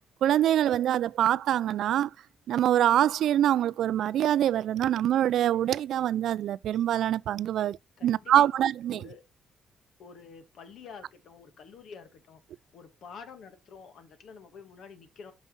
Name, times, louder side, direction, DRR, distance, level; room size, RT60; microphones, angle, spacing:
voice 1, 0.2-2.1 2.5-7.8 8.0-9.0, right 11 dB, 75° right, 0.3 m, -24 dB
voice 2, 7.6-8.5 8.9-9.2 10.0-12.4 12.7-15.3, left 5 dB, 70° left, 1.6 m, -48 dB
5.9 x 5.6 x 4.0 m
cardioid pair, 90°, 0 cm